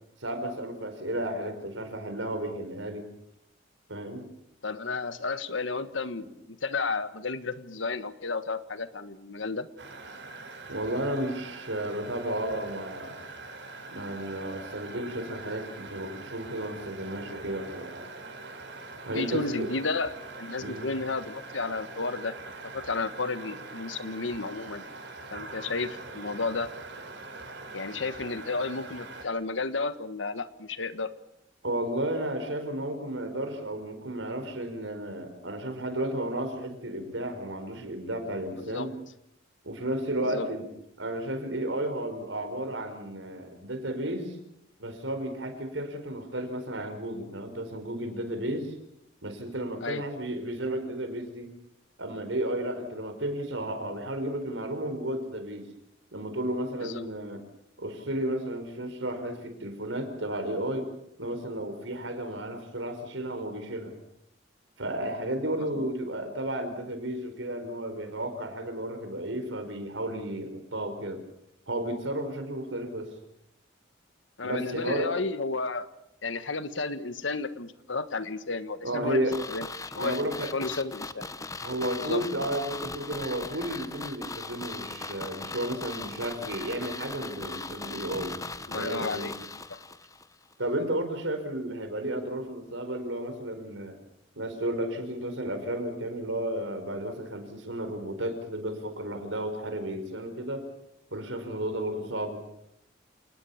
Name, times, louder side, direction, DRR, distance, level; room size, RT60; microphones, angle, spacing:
voice 1, 0.2-3.1 3.9-4.3 10.7-13.2 13.9-17.9 19.0-19.7 20.6-20.9 31.6-38.9 39.6-40.7 41.0-44.4 44.8-48.7 49.2-51.5 52.0-55.7 56.1-57.4 57.8-60.9 61.2-63.9 64.8-71.2 71.7-73.1 74.4-75.1 78.8-79.4 79.9-80.5 81.6-88.4 88.7-89.3 90.6-94.0 94.4-100.6 101.1-102.4, right 1 dB, 85° right, 7 dB, 5.0 m, -33 dB
voice 2, 4.6-9.7 19.1-20.1 20.4-22.3 22.7-24.8 25.3-26.7 27.7-31.1 38.6-38.9 40.2-40.5 49.8-50.0 56.8-57.1 65.7-65.9 74.4-75.9 76.2-79.7 79.9-81.3 82.0-82.2 88.7-89.3 89.7-89.8, left 3 dB, 85° left, 12 dB, 1.5 m, -32 dB
sound 1, 9.8-29.2, right 3 dB, 70° right, 4.8 m, -43 dB
sound 2, 79.3-90.3 90.5-90.6, left 3 dB, 20° left, 1.0 m, -39 dB
28.0 x 19.5 x 7.2 m, 0.78 s
head